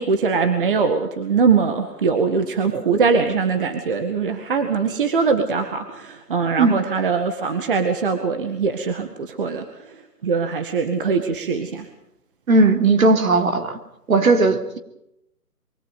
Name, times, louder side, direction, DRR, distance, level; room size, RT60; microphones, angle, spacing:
voice 1, 0.0-9.6 10.2-11.9, right 5 dB, 35° right, 7 dB, 1.9 m, -22 dB
voice 2, 12.5-13.8 14.1-14.8, right 3 dB, 60° right, 6 dB, 3.6 m, -17 dB
25.0 x 24.0 x 5.3 m, 0.81 s
hypercardioid pair, 165°, 47 cm